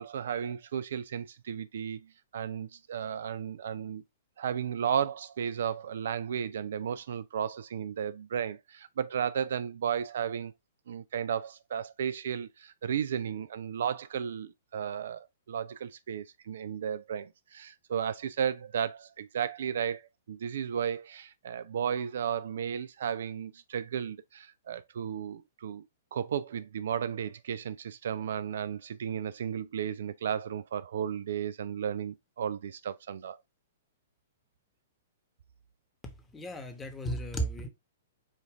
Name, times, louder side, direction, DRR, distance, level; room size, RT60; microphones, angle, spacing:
voice 1, 0.0-4.0 4.4-10.5 10.9-25.9 26.1-33.4, right 8 dB, 65° right, 0.3 m, -34 dB
voice 2, 36.0-37.7, right 1 dB, 15° left, 1.0 m, -35 dB
5.1 x 2.5 x 3.4 m
figure-of-eight pair, 115°, 0 cm